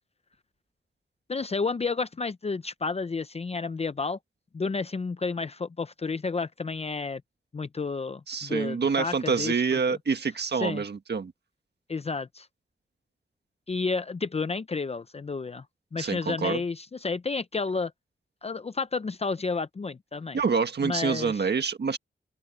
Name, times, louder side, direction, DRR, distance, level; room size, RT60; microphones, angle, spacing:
voice 1, 1.3-4.2 4.5-7.2 7.5-9.8 10.5-10.8 11.9-12.5 13.7-15.6 15.9-17.9 18.4-20.4 20.8-21.5, left 4 dB, 35° left, 0.5 m, -31 dB
voice 2, 8.3-11.3 16.0-16.6 20.3-22.0, right 5 dB, 65° right, 1.6 m, -27 dB
open air
wide cardioid pair, 135°, 18 cm